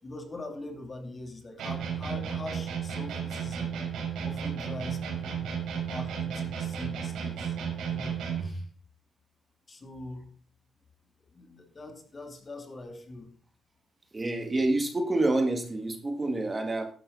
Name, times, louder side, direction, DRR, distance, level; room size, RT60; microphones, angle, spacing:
voice 1, 0.0-3.7 4.2-5.5 5.8-7.6 7.9-8.7 9.7-10.3 11.3-13.3, left 2 dB, 30° left, 4 dB, 2.8 m, -42 dB
sound 1, 1.6-8.6, right 7 dB, 85° right, 5.0 m, -33 dB
voice 2, 14.1-16.9, right 2 dB, 25° right, 5 dB, 2.0 m, -27 dB
12.5 x 11.5 x 4.0 m, 0.43 s
cardioid pair, 105°, 0 cm